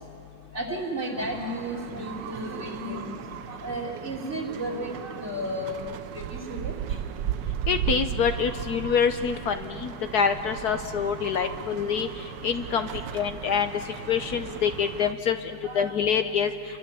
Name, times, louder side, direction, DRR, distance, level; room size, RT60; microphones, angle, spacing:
voice 1, 0.5-3.1 3.5-5.8 6.1-6.7 14.5-14.6 15.6-16.0, right 1 dB, 40° right, -2 dB, 3.6 m, -33 dB
sound 1, 1.2-15.1, right 10 dB, 80° right, 1.5 m, -36 dB
voice 2, 7.7-12.1 12.4-12.9 13.1-13.7 14.1-16.5, left 7 dB, 65° left, 8 dB, 1.3 m, -26 dB
29.0 x 23.5 x 6.9 m, 2.8 s
omnidirectional pair, 1.9 m